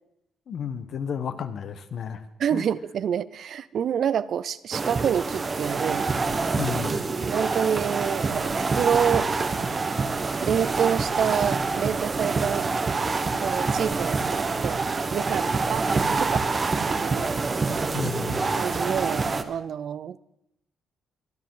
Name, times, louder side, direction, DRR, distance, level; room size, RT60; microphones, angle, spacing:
voice 1, 0.5-2.2 2.5-2.6 6.6-7.0 17.9-18.6, left 7 dB, 60° left, 10 dB, 1.1 m, -32 dB
voice 2, 2.4-6.1 7.2-9.3 10.4-12.7 13.4-16.4 16.9-17.3 18.5-20.2, right 8 dB, 65° right, 17 dB, 0.5 m, -27 dB
sound 1, 4.7-19.4, right 4 dB, 35° right, 1.0 m, -26 dB
24.0 x 10.5 x 3.9 m, 0.82 s
cardioid pair, 90°, 0 cm